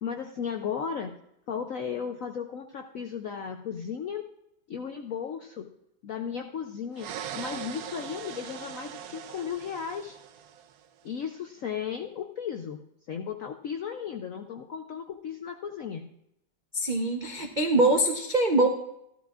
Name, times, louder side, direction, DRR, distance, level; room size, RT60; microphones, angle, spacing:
voice 1, 0.0-1.2 1.5-4.3 4.7-5.7 6.0-7.1 7.3-10.2 11.0-12.8 13.1-16.1, left 7 dB, 70° left, 4 dB, 0.8 m, -35 dB
sound 1, 6.9-10.9, right 9 dB, 70° right, 0.9 m, -40 dB
voice 2, 16.7-18.7, right 2 dB, 50° right, 2 dB, 0.5 m, -23 dB
15.0 x 13.0 x 2.4 m, 0.79 s
omnidirectional pair, 2.1 m